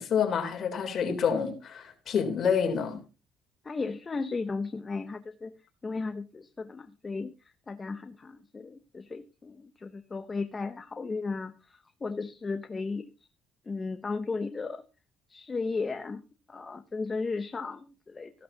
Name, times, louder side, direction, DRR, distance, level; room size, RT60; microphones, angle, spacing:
voice 1, 0.0-3.0, left 7 dB, 50° left, 3.3 m, -28 dB
voice 2, 3.6-5.5 5.8-13.1 13.7-14.8 15.3-16.2 16.5-18.3, left 4 dB, 25° left, 0.8 m, -35 dB
15.0 x 11.5 x 2.8 m
cardioid pair, 110°, 0 cm